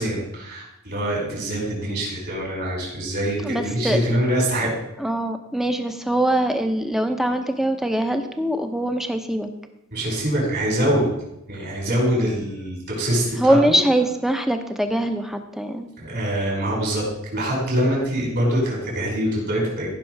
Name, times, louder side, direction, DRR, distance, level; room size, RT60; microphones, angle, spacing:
voice 1, 0.0-4.8 9.9-11.1 11.5-13.8 16.0-19.9, right 1 dB, 55° right, -3 dB, 5.2 m, -24 dB
voice 2, 3.4-4.0 5.0-9.5 13.4-15.9, right 1 dB, ahead, 6 dB, 0.9 m, -22 dB
15.5 x 6.1 x 4.7 m, 0.86 s
head